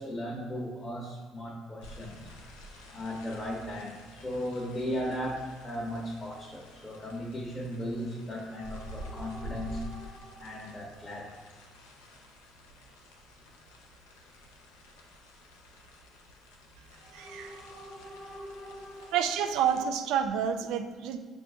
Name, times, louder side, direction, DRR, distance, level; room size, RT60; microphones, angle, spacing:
voice 1, 0.0-2.3 2.9-11.3 16.9-19.2, equal, 20° left, -3 dB, 0.9 m, -37 dB
sound 1, 1.8-19.9, equal, 85° left, 0.6 m, -49 dB
voice 2, 17.1-17.6 19.1-21.2, right 8 dB, 75° right, 8 dB, 0.3 m, -29 dB
6.6 x 2.4 x 2.4 m, 1.4 s
hypercardioid pair, 55°, 0 cm